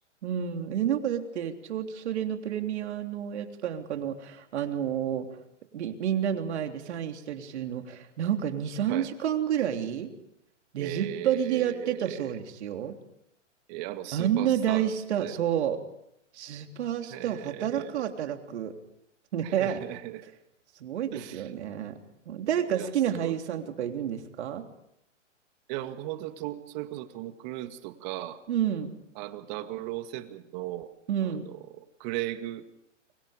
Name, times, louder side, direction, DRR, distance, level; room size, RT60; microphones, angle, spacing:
voice 1, 0.2-5.3 5.7-10.1 10.7-13.0 14.1-15.8 16.3-18.7 19.3-19.8 20.8-22.0 22.3-24.7 28.5-28.9 31.1-31.4, right 9 dB, 60° right, 5 dB, 3.4 m, -29 dB
voice 2, 10.8-12.4 13.7-15.4 17.1-18.1 19.4-20.3 21.1-21.5 22.7-23.4 25.7-28.4 29.2-30.9 31.2-31.6 32.0-32.7, right 15 dB, 35° right, 9 dB, 2.1 m, -37 dB
30.0 x 25.0 x 5.2 m, 0.78 s
hypercardioid pair, 135°, 37 cm